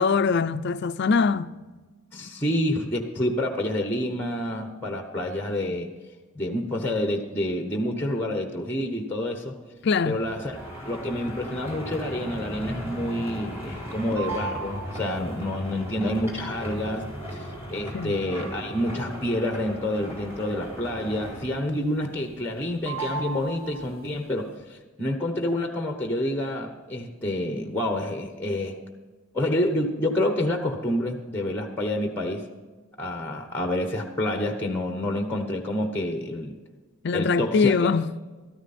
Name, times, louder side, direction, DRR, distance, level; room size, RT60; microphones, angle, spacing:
voice 1, 0.0-1.5 9.8-10.2 17.9-18.2 37.0-38.1, left 5 dB, 50° left, 0.4 m, -22 dB
voice 2, 2.1-5.9 6.3-9.6 10.0-10.6 10.8-28.7 29.3-32.4 33.0-36.5 37.1-37.9, left 1 dB, 10° left, 1.0 m, -28 dB
sound 1, 10.2-21.7 22.0-22.6 22.8-24.2, right 1 dB, 10° right, 4.2 m, -36 dB
13.5 x 13.5 x 4.2 m
head